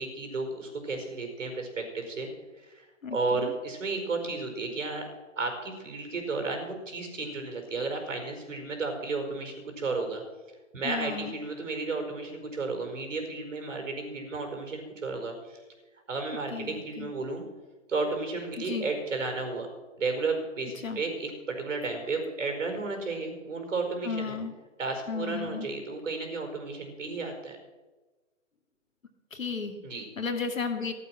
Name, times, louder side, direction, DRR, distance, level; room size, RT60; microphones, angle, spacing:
voice 1, 0.0-2.3 2.6-5.1 5.4-10.2 10.7-15.6 16.1-17.4 17.9-19.7 20.0-24.4 24.8-27.6 29.8-30.0, right 3 dB, 75° right, 5 dB, 4.7 m, -33 dB
voice 2, 3.0-3.5 10.8-11.3 16.5-17.1 18.6-18.9 20.8-21.0 24.0-24.5 25.1-25.7 29.3-29.8 30.2-30.9, left 5 dB, 85° left, 5 dB, 2.5 m, -34 dB
15.0 x 11.5 x 5.9 m, 1.2 s
hypercardioid pair, 140°, 39 cm